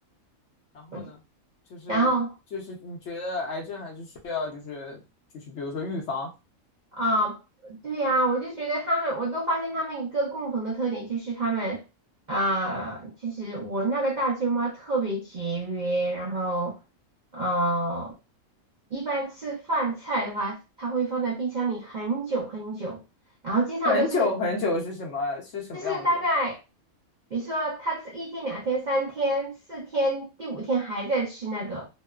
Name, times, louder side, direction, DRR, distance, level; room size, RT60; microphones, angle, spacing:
voice 1, 0.7-1.2 1.7-2.1 2.5-5.0 5.5-6.3 23.8-26.2, left 3 dB, 60° left, 0.9 m, -30 dB
voice 2, 1.9-2.3 7.0-7.4 7.6-11.8 12.3-16.8 17.3-18.1 18.9-23.0 23.4-24.3 25.7-26.6 27.3-31.9, right 2 dB, 55° right, 0.5 m, -27 dB
2.8 x 2.0 x 2.3 m
omnidirectional pair, 1.5 m